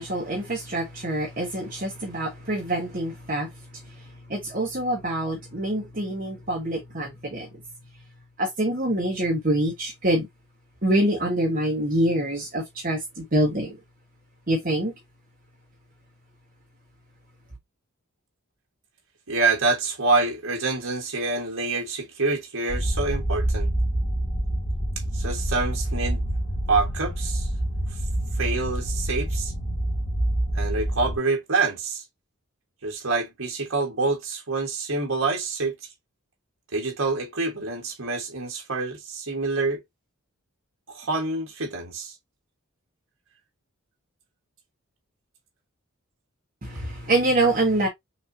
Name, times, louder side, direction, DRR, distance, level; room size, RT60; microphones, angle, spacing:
voice 1, 0.0-3.5 4.3-7.5 8.4-10.3 10.8-13.8 14.5-14.9 46.6-47.9, right 1 dB, 40° right, 1.2 m, -25 dB
voice 2, 19.3-23.7 25.1-26.2 26.7-27.5 28.4-29.5 30.5-32.0 32.8-35.7 36.7-39.8 40.9-42.1 46.7-46.9, right 3 dB, 65° right, 1.5 m, -26 dB
sound 1, 22.7-31.2, right 1 dB, 35° left, 1.4 m, -27 dB
6.3 x 2.8 x 2.6 m
head